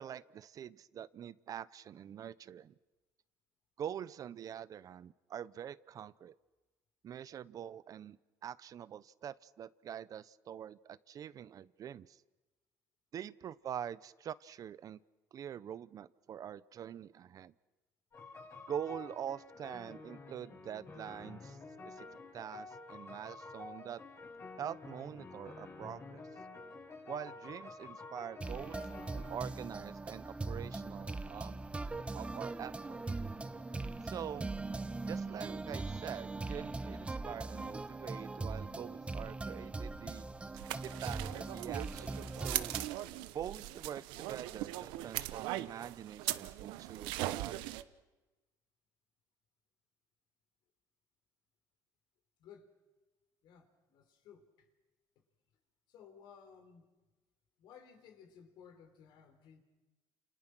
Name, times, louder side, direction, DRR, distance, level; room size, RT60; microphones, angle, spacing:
voice 1, 0.0-2.7 3.8-6.3 7.0-8.2 8.4-12.2 13.1-15.0 15.3-17.5 18.7-21.6 21.9-22.1 22.3-24.0 24.6-26.2 27.1-28.8 29.1-31.6 32.1-33.0 34.0-34.5 35.0-40.3 40.8-42.8 43.3-47.7, right 9 dB, 50° right, 17 dB, 0.8 m, -45 dB
sound 1, 18.1-29.7, left 3 dB, 35° left, 6.2 m, -50 dB
sound 2, 28.4-42.9, right 3 dB, 15° right, 1.1 m, -41 dB
sound 3, 40.6-47.8, right 16 dB, 85° right, 0.9 m, -40 dB
voice 2, 52.4-52.7 53.4-54.7 55.9-56.9 57.6-59.6, left 7 dB, 70° left, 6 dB, 4.1 m, -57 dB
29.0 x 28.5 x 6.2 m, 1.2 s
cardioid pair, 105°, 8 cm